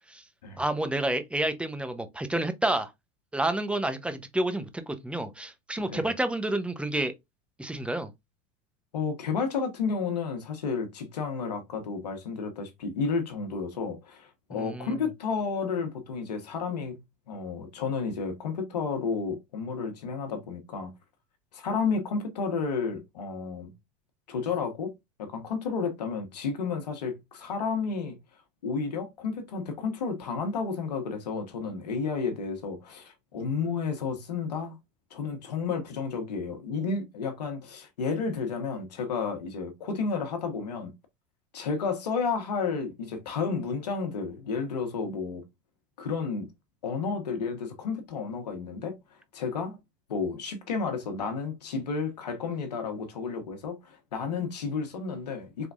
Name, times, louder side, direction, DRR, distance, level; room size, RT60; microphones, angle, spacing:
voice 1, 0.6-2.9 3.3-7.1 7.6-8.1 14.5-15.0, right 1 dB, 5° right, 0.9 m, -29 dB
voice 2, 8.9-17.0 17.3-20.9 21.5-23.7 24.3-24.9 25.2-28.2 28.6-34.8 35.1-40.9 41.5-45.4 46.0-46.5 46.8-49.0 49.3-49.8 50.1-55.7, left 5 dB, 90° left, 1.3 m, -31 dB
4.9 x 3.5 x 2.5 m
hypercardioid pair, 95°, 20 cm